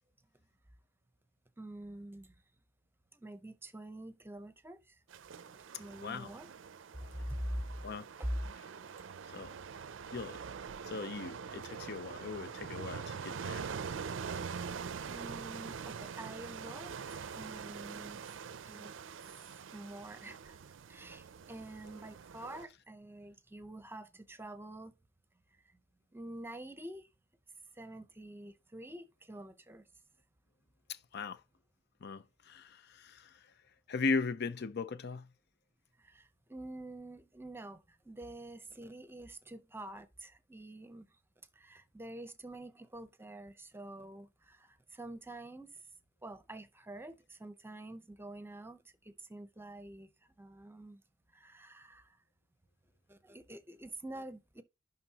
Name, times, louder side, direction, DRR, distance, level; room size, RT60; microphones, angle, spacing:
voice 1, 1.6-2.4 3.1-5.0 5.4-6.5 6.9-7.7 8.2-8.5 8.9-9.0 15.1-18.2 18.7-18.9 19.7-20.6 20.9-24.9 26.1-27.1 27.7-29.8 36.0-41.1 41.5-45.8 46.2-50.1 50.4-51.0 51.3-52.2 53.1-54.6, right 1 dB, 10° right, 0.8 m, -46 dB
sound 1, 5.1-22.6, right 6 dB, 75° right, 0.5 m, -44 dB
voice 2, 10.9-13.6 30.9-31.4 32.0-33.3 33.9-35.3, left 4 dB, 60° left, 0.5 m, -38 dB
11.0 x 4.0 x 2.9 m
head